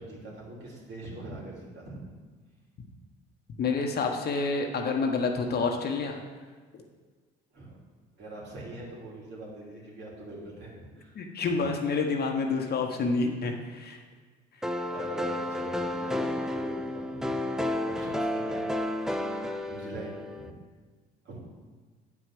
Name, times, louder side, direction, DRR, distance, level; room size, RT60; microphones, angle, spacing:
voice 1, 0.0-2.1 7.5-7.7 8.2-11.1 11.4-11.7 14.8-19.0 19.7-20.5 21.2-21.4, right 1 dB, 55° right, -4 dB, 3.0 m, -43 dB
voice 2, 3.6-6.2 11.2-14.0, left 4 dB, 50° left, 3 dB, 1.2 m, -28 dB
sound 1, 14.6-20.5, left 1 dB, ahead, 0.6 m, -31 dB
8.8 x 4.9 x 6.1 m, 1.4 s
supercardioid pair, 70°, 21 cm